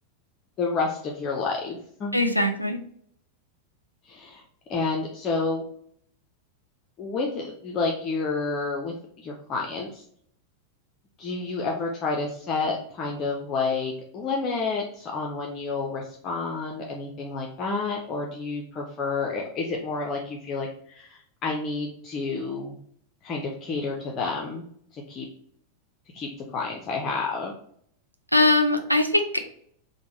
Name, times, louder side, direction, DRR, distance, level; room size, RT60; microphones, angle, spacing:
voice 1, 0.6-2.2 4.1-4.4 4.7-5.6 7.0-10.0 11.2-22.8 23.2-24.6 24.9-25.3 26.1-27.5, left 4 dB, 30° left, 0 dB, 0.5 m, -30 dB
voice 2, 2.1-2.8 28.3-29.4, left 2 dB, 90° right, 5 dB, 0.3 m, -21 dB
3.4 x 2.0 x 3.1 m, 0.65 s
figure-of-eight pair, 90°, 0 cm